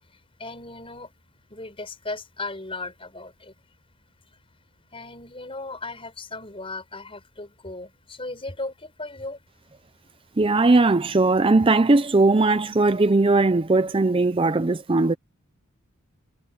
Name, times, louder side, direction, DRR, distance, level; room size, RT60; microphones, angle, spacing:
voice 1, 0.4-1.1 1.5-3.5 4.9-9.4, left 2 dB, 25° left, 5.5 m, -36 dB
voice 2, 10.4-15.1, right 3 dB, 25° right, 0.5 m, -19 dB
head